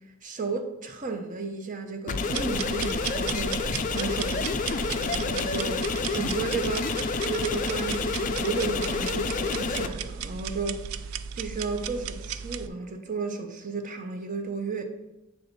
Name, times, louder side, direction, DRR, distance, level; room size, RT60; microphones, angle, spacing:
voice 1, 0.2-7.0 7.2-10.8 11.4-14.8, right 4 dB, 40° right, 0.6 m, -33 dB
sound 1, 2.1-9.9, left 4 dB, 40° left, 0.4 m, -29 dB
sound 2, 2.3-12.7, right 7 dB, 85° right, 0.3 m, -35 dB
8.4 x 3.4 x 4.0 m
head